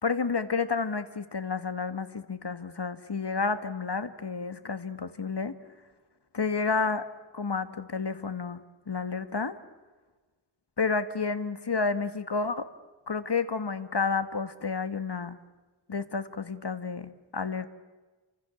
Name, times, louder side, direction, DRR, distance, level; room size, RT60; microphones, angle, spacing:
voice 1, 0.0-5.5 6.3-7.1 7.3-9.5 10.8-12.7 13.1-15.4 15.9-17.7, left 4 dB, 60° left, 10 dB, 1.9 m, -30 dB
29.5 x 26.0 x 7.1 m, 1.3 s
wide cardioid pair, 55°, 45 cm